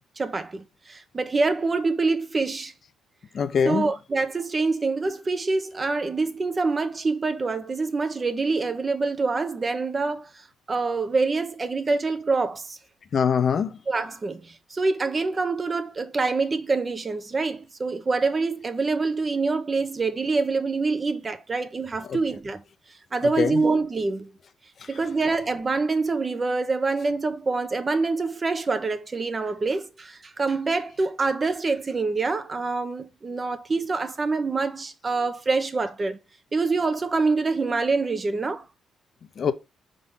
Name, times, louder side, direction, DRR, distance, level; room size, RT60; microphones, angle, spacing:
voice 1, 0.2-2.7 3.6-10.3 10.7-12.8 13.9-22.6 23.1-24.3 24.9-36.2 36.5-38.6, right 3 dB, 30° right, 1.0 m, -26 dB
voice 2, 3.3-3.9 13.1-13.7 22.1-22.2 23.2-23.6 39.4-39.5, left 6 dB, 50° left, 0.7 m, -23 dB
5.1 x 3.9 x 5.7 m
cardioid pair, 90°, 0 cm